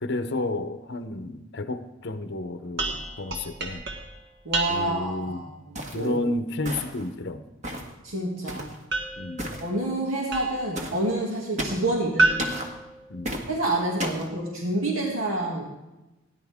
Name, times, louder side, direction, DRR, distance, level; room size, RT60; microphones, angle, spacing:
voice 1, 0.0-3.8 4.7-5.4 5.9-7.4 9.2-9.5 13.1-13.4, left 2 dB, 55° left, 9 dB, 0.7 m, -31 dB
sound 1, 2.8-5.2 8.9-10.8 12.2-13.6, right 2 dB, 55° right, 1.5 m, -30 dB
voice 2, 4.4-6.2 8.0-8.7 9.6-12.4 13.5-15.6, right 2 dB, 90° right, -2 dB, 2.3 m, -28 dB
sound 2, 5.7-6.1 6.6-7.1 7.6-7.9 8.5-8.8 9.4-9.6 10.7-11.0 11.6-11.9 12.4-12.7 13.2-13.5 14.0-14.3, right 1 dB, 35° right, 1.6 m, -33 dB
18.5 x 10.5 x 3.6 m, 1.0 s
head